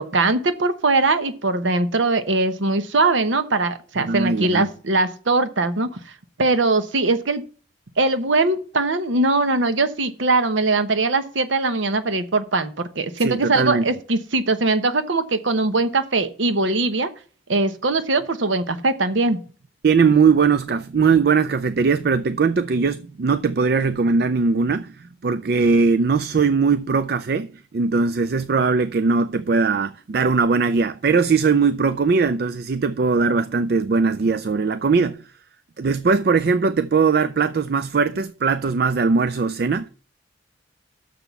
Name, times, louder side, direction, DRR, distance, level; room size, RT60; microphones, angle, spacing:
voice 1, 0.0-6.0 6.4-7.4 8.0-17.1 17.5-19.4, right 3 dB, 80° right, 0.9 m, -21 dB
voice 2, 4.1-4.7 13.2-13.8 19.8-27.5 27.7-35.3 35.8-39.9, right 4 dB, 55° right, 0.4 m, -20 dB
6.7 x 6.0 x 6.9 m
head